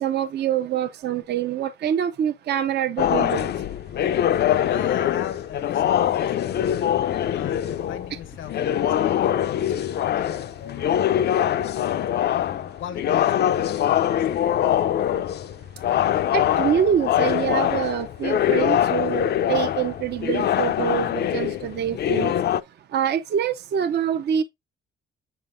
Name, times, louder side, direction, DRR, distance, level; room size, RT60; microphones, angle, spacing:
voice 1, 0.0-3.5 16.3-22.3 22.9-24.4, right 9 dB, 55° right, 0.6 m, -25 dB
sound 1, 3.0-22.6, left 10 dB, 55° left, 0.5 m, -23 dB
voice 2, 4.7-6.9 7.3-12.0 12.8-14.5, left 10 dB, 80° left, 0.8 m, -39 dB
7.3 x 5.5 x 2.5 m
cardioid pair, 90°, 20 cm